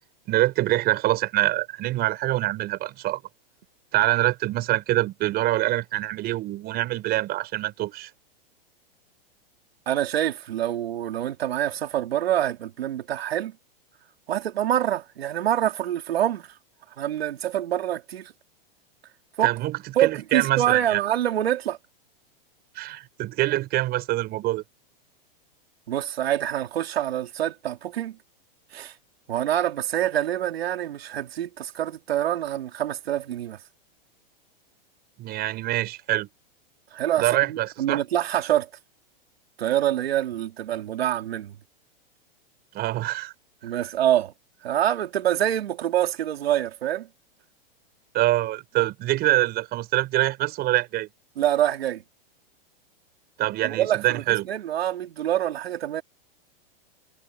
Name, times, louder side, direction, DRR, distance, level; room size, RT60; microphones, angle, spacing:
voice 1, 0.3-3.2 3.9-8.1 19.4-21.0 22.7-24.6 35.2-36.3 37.2-38.0 42.7-43.3 48.1-51.1 53.4-54.5, right 16 dB, 30° right, 6.2 m, -25 dB
voice 2, 9.9-13.5 14.3-16.5 17.0-18.3 19.4-19.5 20.0-21.8 25.9-28.2 28.7-28.9 29.3-33.6 36.9-38.7 39.6-41.6 43.6-44.3 44.6-47.1 51.4-52.0 53.6-56.0, right 11 dB, 85° right, 3.5 m, -26 dB
hypercardioid pair, 145°, 30 cm